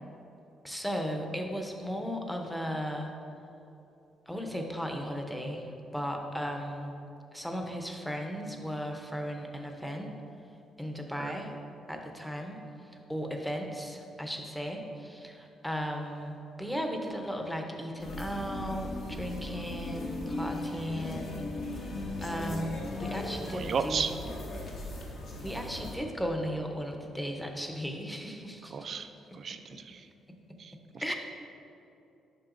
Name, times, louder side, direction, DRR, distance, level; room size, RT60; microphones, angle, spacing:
voice 1, 0.6-3.1 4.3-6.9 7.3-10.2 10.8-11.5 11.9-12.6 13.1-21.4 21.7-24.1 25.4-29.4 29.7-29.8 31.0-31.1, equal, 5° left, 2 dB, 0.7 m, -36 dB
sound 1, 18.0-26.0, left 2 dB, 70° left, 1.1 m, -38 dB
voice 2, 23.5-24.1 28.7-29.1 29.3-30.1 30.6-31.1, right 6 dB, 50° right, 9 dB, 0.3 m, -34 dB
7.6 x 5.5 x 2.5 m, 2.8 s
cardioid pair, 90°, 0 cm